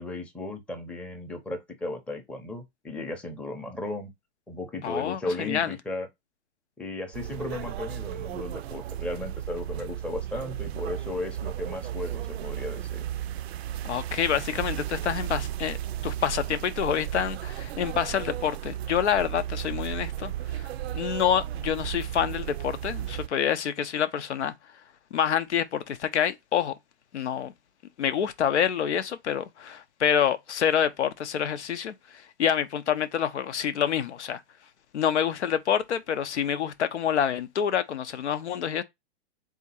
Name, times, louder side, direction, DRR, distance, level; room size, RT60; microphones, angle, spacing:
voice 1, 0.0-4.1 4.5-6.1 6.8-13.0, left 2 dB, 5° left, 0.6 m, -35 dB
voice 2, 4.8-5.7 13.8-15.8 16.0-24.5 25.1-26.7 27.1-27.5 28.0-34.4 34.9-38.8, left 8 dB, 90° left, 0.6 m, -27 dB
sound 1, 7.1-23.3, right 12 dB, 65° right, 0.5 m, -34 dB
3.7 x 2.8 x 4.0 m
hypercardioid pair, 125°, 34 cm